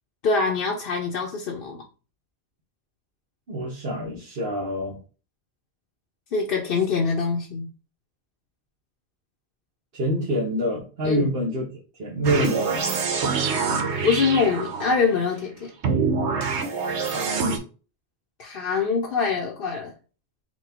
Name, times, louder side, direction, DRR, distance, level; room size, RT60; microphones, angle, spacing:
voice 1, 0.2-1.8 6.3-7.7 11.0-11.3 14.0-15.7 18.4-19.9, left 5 dB, 60° left, 0 dB, 0.8 m, -24 dB
voice 2, 3.5-5.0 9.9-11.6 12.0-12.8 17.0-17.6, equal, 60° right, -4 dB, 1.2 m, -26 dB
sound 1, 12.2-15.1 15.8-17.6, right 5 dB, 85° right, 1.1 m, -25 dB
4.5 x 2.3 x 4.2 m, 0.36 s
omnidirectional pair, 1.1 m